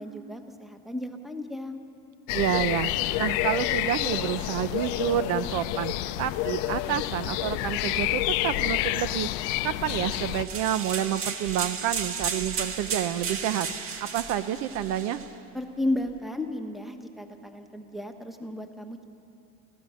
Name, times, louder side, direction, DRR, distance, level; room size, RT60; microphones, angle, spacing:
voice 1, 0.0-1.8 15.5-19.0, left 1 dB, ahead, 5 dB, 1.2 m, -33 dB
sound 1, 2.3-10.4, left 17 dB, 85° left, 0.6 m, -29 dB
voice 2, 2.3-9.3 9.6-13.7 14.0-15.2, right 11 dB, 65° right, 13 dB, 0.8 m, -29 dB
sound 2, 9.9-15.3, right 6 dB, 50° right, 1.7 m, -34 dB
28.5 x 14.5 x 6.4 m, 2.8 s
cardioid pair, 145°, 29 cm